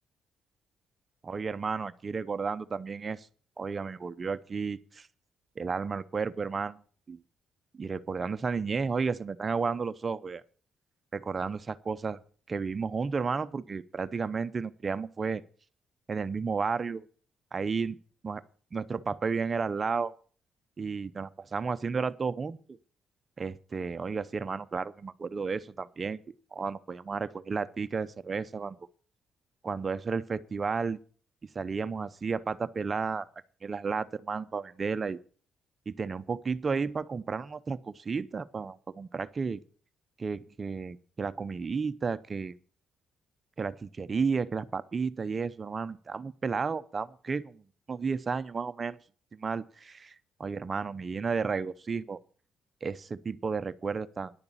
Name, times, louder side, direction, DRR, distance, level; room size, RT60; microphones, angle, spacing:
voice 1, 1.2-3.3 3.6-5.1 5.6-6.8 7.1-7.2 7.7-10.4 11.1-12.2 12.5-15.4 16.1-17.0 17.5-18.0 18.2-18.4 18.7-20.1 20.8-22.6 23.4-26.2 26.5-28.9 29.6-31.0 31.5-33.3 33.6-35.2 35.9-39.6 40.2-42.5 43.6-47.6 47.9-49.0 49.3-52.2 52.8-54.3, right 5 dB, 35° right, 13 dB, 0.7 m, -32 dB
11.0 x 6.8 x 8.5 m, 0.43 s
cardioid pair, 90°, 0 cm